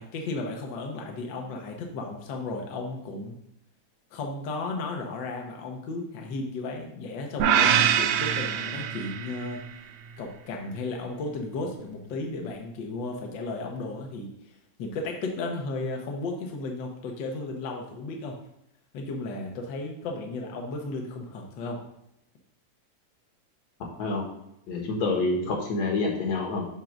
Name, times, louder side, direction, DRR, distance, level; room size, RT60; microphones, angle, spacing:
voice 1, 0.0-3.4 4.1-9.6 10.2-14.3 14.8-18.4 18.9-21.8, left 3 dB, 80° left, 1 dB, 1.0 m, -34 dB
sound 1, 7.4-9.6, right 9 dB, 90° right, 1.4 m, -24 dB
voice 2, 24.7-26.7, left 3 dB, 65° left, -1 dB, 2.4 m, -27 dB
7.5 x 2.6 x 5.8 m, 0.80 s
omnidirectional pair, 3.5 m